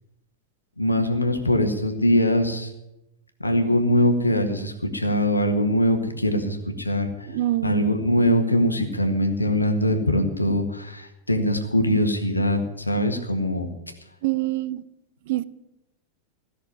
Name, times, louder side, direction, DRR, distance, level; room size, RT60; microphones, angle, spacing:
voice 1, 0.8-2.7 3.4-7.4 7.6-13.7, equal, 85° left, 1.7 m, -22 dB
voice 2, 7.3-8.1 14.2-14.8 15.2-15.4, right 16 dB, 50° right, 0.6 m, -26 dB
16.0 x 6.6 x 9.8 m
figure-of-eight pair, 90°, 0 cm